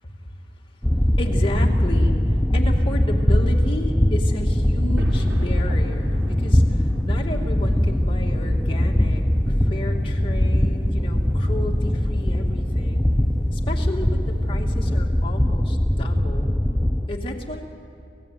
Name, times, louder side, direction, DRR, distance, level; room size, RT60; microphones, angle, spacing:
voice 1, 0.0-0.4 1.2-13.1 13.5-16.6 17.1-17.6, left 1 dB, 30° left, 0 dB, 2.5 m, -33 dB
sound 1, 0.8-17.1, left 1 dB, 5° left, 0.7 m, -21 dB
sound 2, 5.0-15.2, equal, 85° right, 3.9 m, -39 dB
27.5 x 16.0 x 9.4 m, 2.6 s
head